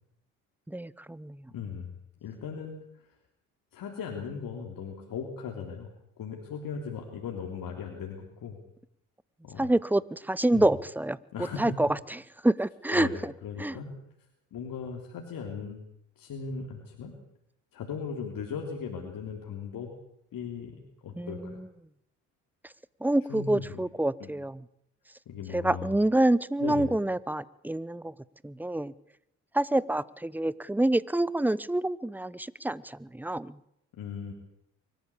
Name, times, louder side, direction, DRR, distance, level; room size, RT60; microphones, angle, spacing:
voice 1, 0.7-1.4 9.6-11.2 11.6-11.9 12.4-13.1 13.6-13.7 21.2-21.7 23.0-24.6 25.5-28.1 28.4-28.9 29.5-33.5, right 1 dB, 5° right, 20 dB, 0.9 m, -27 dB
voice 2, 1.5-1.9 2.2-3.1 3.7-5.9 6.2-8.6 9.4-9.7 10.5-10.7 11.3-11.6 12.9-13.9 14.5-15.8 16.2-17.1 17.7-19.9 20.3-21.6 23.3-23.9 24.2-24.3 25.2-26.0 26.6-26.9 33.9-34.3, left 6 dB, 65° left, 1 dB, 3.4 m, -38 dB
24.0 x 13.5 x 8.5 m, 0.76 s
hypercardioid pair, 60°, 37 cm